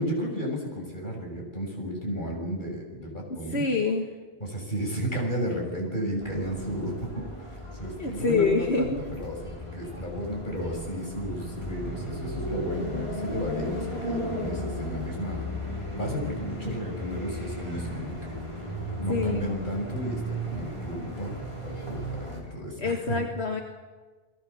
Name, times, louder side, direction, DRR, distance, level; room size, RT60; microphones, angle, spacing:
voice 1, 0.0-3.6 4.4-18.7 19.0-21.3 21.6-23.2, equal, 50° left, 0 dB, 7.1 m, -33 dB
voice 2, 3.5-4.1 8.0-9.0 19.1-19.5 22.8-23.6, left 4 dB, 85° left, 3 dB, 2.0 m, -26 dB
sound 1, 6.2-22.4, equal, 30° left, 5.8 m, -35 dB
29.5 x 21.5 x 7.2 m, 1.3 s
omnidirectional pair, 1.1 m